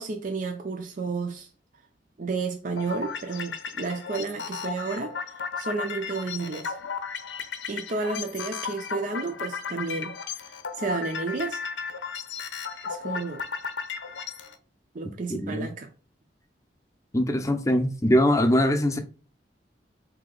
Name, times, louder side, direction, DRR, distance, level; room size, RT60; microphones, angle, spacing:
voice 1, 0.0-1.5 2.2-5.1 5.6-6.8 7.7-11.6 12.8-13.4 14.9-15.9, right 4 dB, 45° right, 0.5 m, -32 dB
sound 1, 2.8-14.5, left 5 dB, 90° left, 0.6 m, -35 dB
voice 2, 15.3-15.7 17.1-19.0, left 1 dB, 20° left, 0.6 m, -22 dB
4.2 x 2.8 x 3.8 m
head